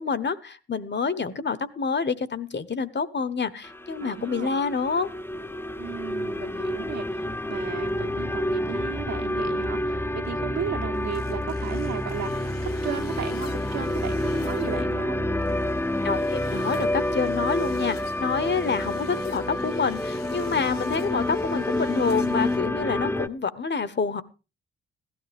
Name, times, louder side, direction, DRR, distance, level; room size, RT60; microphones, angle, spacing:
voice 1, 0.0-5.1 16.0-24.2, left 5 dB, 35° left, 16 dB, 1.2 m, -27 dB
sound 1, 3.6-23.3, left 1 dB, 10° left, 0.8 m, -28 dB
voice 2, 4.0-4.5 5.8-7.2 7.5-12.5 12.8-15.3, right 9 dB, 65° right, 2 dB, 1.9 m, -35 dB
sound 2, 10.9-22.6, left 8 dB, 85° left, 1.3 m, -48 dB
17.0 x 12.5 x 3.5 m, 0.32 s
hypercardioid pair, 45°, 30 cm